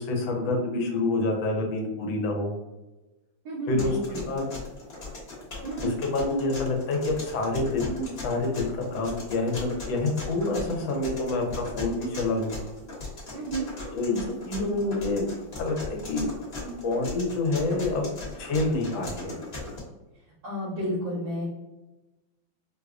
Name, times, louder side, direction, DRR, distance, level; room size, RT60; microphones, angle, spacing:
voice 1, 0.0-2.5 3.7-4.5 5.8-12.5 13.9-15.2 15.6-16.3 16.6-18.1 18.4-19.4, left 2 dB, 75° left, 2 dB, 1.4 m, -27 dB
voice 2, 3.4-4.2 5.6-5.9 13.3-13.7 20.4-21.4, right 1 dB, 65° right, -13 dB, 2.0 m, -31 dB
sound 1, 3.8-19.8, left 3 dB, 40° left, 1.0 m, -38 dB
4.6 x 2.2 x 2.4 m, 1.1 s
omnidirectional pair, 2.2 m